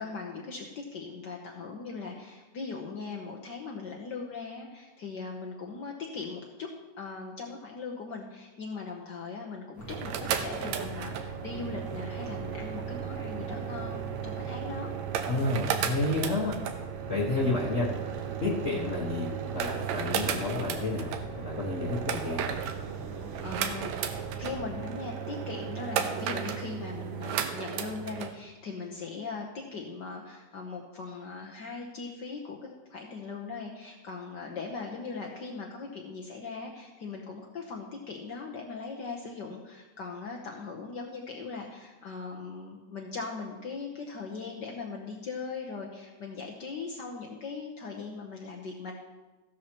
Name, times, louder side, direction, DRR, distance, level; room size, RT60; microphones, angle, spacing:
voice 1, 0.0-6.7 7.0-14.9 23.4-49.0, left 4 dB, 80° left, 0 dB, 0.9 m, -39 dB
sound 1, 9.8-24.9, left 1 dB, 15° left, 0.5 m, -44 dB
sound 2, 9.8-28.3, right 9 dB, 75° right, 2.0 m, -34 dB
voice 2, 15.3-16.5 17.1-17.9 18.4-22.6, left 2 dB, 45° left, -4 dB, 1.0 m, -30 dB
15.0 x 12.0 x 2.9 m, 1.2 s
omnidirectional pair, 3.4 m